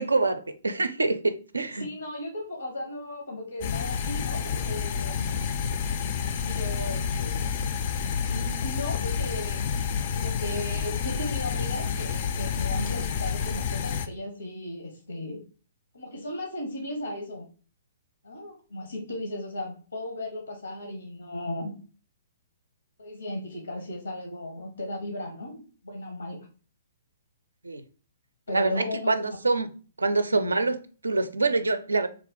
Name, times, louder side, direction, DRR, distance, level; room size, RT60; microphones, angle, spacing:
voice 1, 0.0-1.8 27.6-27.8 28.5-29.7 30.0-32.1, right 3 dB, 80° right, 0.4 m, -26 dB
voice 2, 1.8-5.3 6.2-7.5 8.2-9.6 10.1-15.4 15.9-17.5 18.2-21.7 23.0-26.5 28.5-29.3, left 1 dB, 85° left, 0.8 m, -36 dB
sound 1, 3.6-14.1, left 6 dB, 45° left, 0.3 m, -29 dB
3.5 x 2.3 x 3.5 m
figure-of-eight pair, 120°, 0 cm